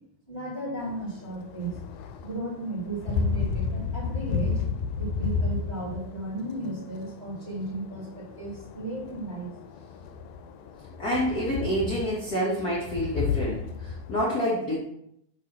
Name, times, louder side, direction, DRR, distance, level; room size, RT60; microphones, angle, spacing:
voice 1, 0.3-1.8 2.2-4.6 5.0-9.5, right 2 dB, 20° right, -7 dB, 2.3 m, -35 dB
sound 1, 0.8-14.2, left 5 dB, 85° left, 2.3 m, -33 dB
voice 2, 11.0-14.8, equal, 40° left, -7 dB, 1.4 m, -28 dB
6.6 x 3.6 x 5.9 m, 0.75 s
omnidirectional pair, 4.1 m